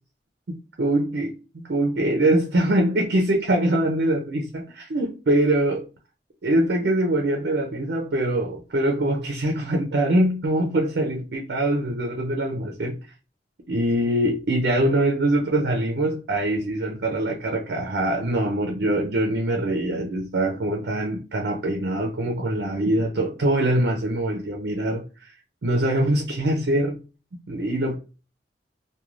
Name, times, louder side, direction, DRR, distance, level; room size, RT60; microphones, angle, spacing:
voice 1, 0.8-1.3 1.7-5.7 6.4-13.0 13.7-25.3 25.6-27.0 27.5-28.0, right 1 dB, 70° right, 0.5 m, -23 dB
2.4 x 2.2 x 3.0 m
head